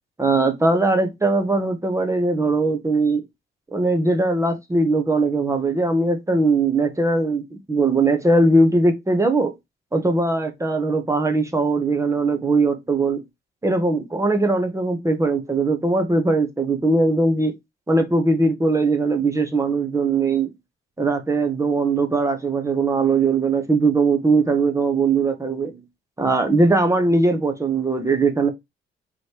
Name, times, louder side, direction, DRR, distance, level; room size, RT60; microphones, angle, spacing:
voice 1, 0.2-3.2 3.7-9.5 9.9-13.2 13.6-17.5 17.9-20.5 21.0-25.7 26.2-28.5, right 3 dB, 15° right, 0.9 m, -20 dB
3.9 x 3.1 x 3.3 m
cardioid pair, 90°, 20 cm